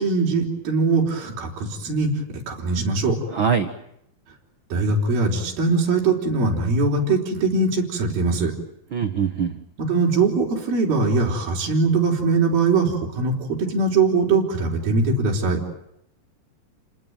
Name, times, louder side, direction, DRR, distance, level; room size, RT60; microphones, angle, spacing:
voice 1, 0.0-2.1 2.5-3.2 4.7-8.5 9.8-15.6, right 3 dB, 70° right, -2 dB, 6.1 m, -21 dB
voice 2, 3.3-3.7 8.9-9.6, right 6 dB, 90° right, 8 dB, 1.1 m, -22 dB
30.0 x 20.0 x 9.1 m, 0.79 s
omnidirectional pair, 4.4 m